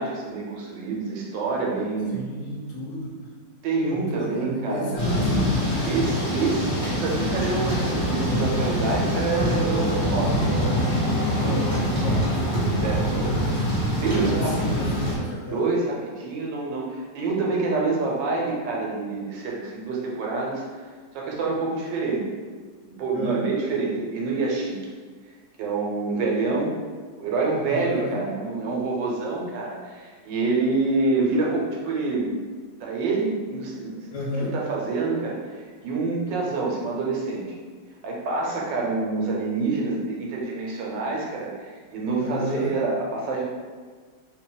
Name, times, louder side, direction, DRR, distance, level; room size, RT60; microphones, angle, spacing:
voice 1, 0.0-2.2 3.6-5.0 5.8-11.9 12.7-13.6 14.0-14.8 15.5-20.8 21.1-22.2 23.0-24.8 25.6-26.8 27.2-32.4 32.8-34.0 34.3-37.5 38.0-43.4, right 3 dB, 85° right, -2 dB, 1.4 m, -27 dB
voice 2, 2.1-3.3 3.9-5.6 11.4-12.3 14.2-15.7 23.1-23.4 27.7-28.2 34.1-34.6 42.2-42.8, left 1 dB, 85° left, -3 dB, 1.3 m, -32 dB
Thunder / Rain, 5.0-15.1, equal, 15° left, 1.3 m, -24 dB
2.9 x 2.8 x 3.8 m, 1.5 s
omnidirectional pair, 1.9 m